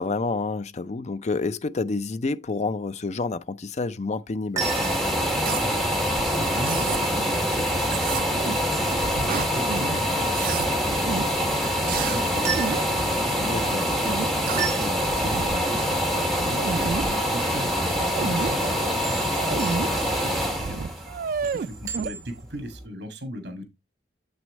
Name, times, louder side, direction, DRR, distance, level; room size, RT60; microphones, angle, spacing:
voice 1, 0.0-4.7 13.4-13.8 18.2-18.4, left 3 dB, 40° left, 0.5 m, -28 dB
sound 1, 4.3-22.5, right 6 dB, 20° right, 3.2 m, -39 dB
sound 2, 4.6-22.3 22.7-22.8, equal, ahead, 2.0 m, -25 dB
sound 3, 5.3-5.7 6.2-7.0 7.8-8.7 9.0-9.9 10.1-10.7 11.1-11.3 11.9-12.2 12.6-12.9 14.0-14.8 15.1-15.7 16.1-16.2 16.4-17.1 17.8-18.5 19.3-19.9 20.3-20.4 20.5-22.1, right 6 dB, 50° right, 0.3 m, -31 dB
voice 2, 5.4-14.0 14.5-20.9 21.4-23.7, equal, 70° right, 2.2 m, -38 dB
8.0 x 6.2 x 3.1 m
head